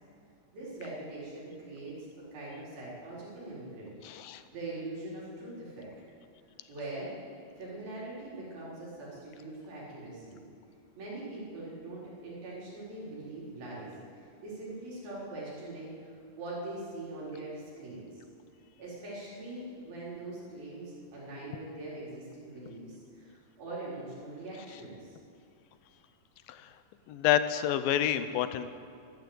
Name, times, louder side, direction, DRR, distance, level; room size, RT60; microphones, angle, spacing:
voice 1, 0.5-2.0 2.3-4.0 4.2-5.9 6.7-7.1 7.6-10.4 11.0-15.9 16.4-18.2 18.8-25.1, right 2 dB, 90° right, -7 dB, 6.2 m, -42 dB
voice 2, 4.0-4.4 26.5-26.6 27.1-28.7, left 11 dB, 85° left, 11 dB, 2.4 m, -28 dB
13.0 x 12.0 x 8.0 m, 2.3 s
omnidirectional pair, 4.1 m